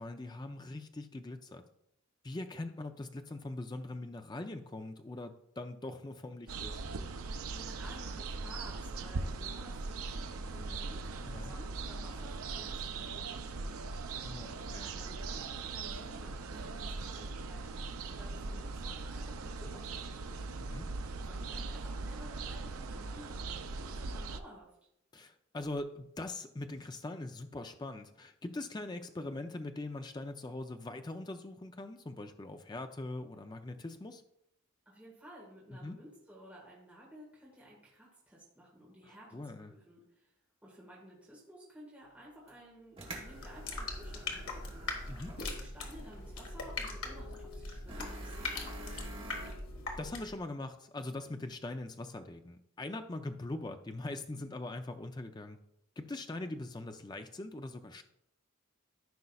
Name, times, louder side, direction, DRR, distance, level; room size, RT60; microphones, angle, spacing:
voice 1, 0.0-1.6 2.2-6.8 11.3-11.5 14.2-14.9 20.6-20.9 25.1-34.2 35.7-36.0 39.1-39.7 45.1-45.4 50.0-55.6 56.0-58.0, left 2 dB, 20° left, 7 dB, 0.4 m, -42 dB
sound 1, 6.5-24.4, right 3 dB, 85° right, 0.5 m, -40 dB
voice 2, 7.5-14.0 14.6-20.5 21.3-24.7 34.9-39.4 39.7-40.3 40.6-44.9 45.4-49.5, equal, 5° right, -6 dB, 1.7 m, -54 dB
sound 2, 42.5-42.6 43.0-45.6 45.9-46.0 47.9-49.5, right 1 dB, 25° right, 1.5 m, -47 dB
sound 3, 43.2-50.4, left 3 dB, 80° left, 1.5 m, -41 dB
14.0 x 5.3 x 2.3 m, 0.77 s
head